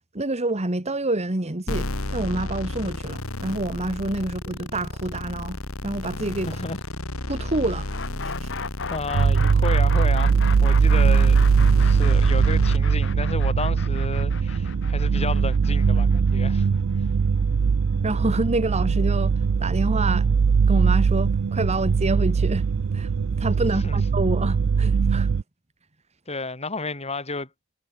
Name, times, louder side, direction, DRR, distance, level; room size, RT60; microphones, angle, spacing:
voice 1, 0.1-5.6 5.8-6.5 7.3-7.9 8.2-8.5 18.0-19.3 19.6-20.3 20.7-22.7 22.9-23.1 23.4-25.3, right 2 dB, 30° right, 1.8 m, -27 dB
sound 1, 1.7-12.8, left 1 dB, 75° left, 3.6 m, -32 dB
voice 2, 6.4-6.8 8.6-16.7 23.8-24.0 26.3-27.5, left 3 dB, 30° left, 4.7 m, -32 dB
sound 2, 7.9-17.7, left 5 dB, 60° left, 3.7 m, -36 dB
sound 3, 9.1-25.4, right 5 dB, 75° right, 0.4 m, -20 dB
head